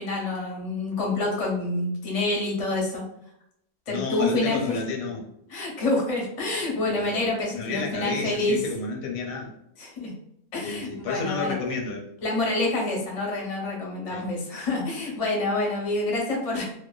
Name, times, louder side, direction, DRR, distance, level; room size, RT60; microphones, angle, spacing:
voice 1, 0.0-3.0 3.9-4.8 5.5-8.6 9.8-10.1 10.5-11.6 12.2-16.7, left 2 dB, 45° left, -2 dB, 0.4 m, -27 dB
voice 2, 3.9-5.3 6.8-7.2 7.5-9.5 10.6-12.1 14.1-14.3, left 4 dB, 85° left, 2 dB, 1.1 m, -31 dB
2.6 x 2.1 x 2.3 m, 0.75 s
omnidirectional pair, 1.6 m